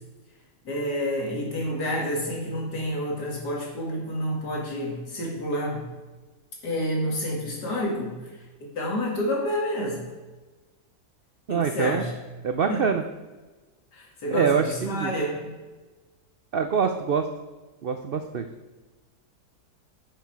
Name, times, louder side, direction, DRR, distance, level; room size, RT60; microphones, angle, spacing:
voice 1, 0.6-5.8 6.6-8.3 8.7-10.1 11.5-12.1 12.7-13.0 13.9-15.6, equal, 90° left, -1 dB, 2.8 m, -29 dB
voice 2, 11.5-12.0 12.4-13.0 14.3-15.1 16.5-17.3 17.8-18.4, right 6 dB, 80° right, 7 dB, 0.5 m, -25 dB
10.5 x 6.4 x 4.7 m, 1.2 s
omnidirectional pair, 1.7 m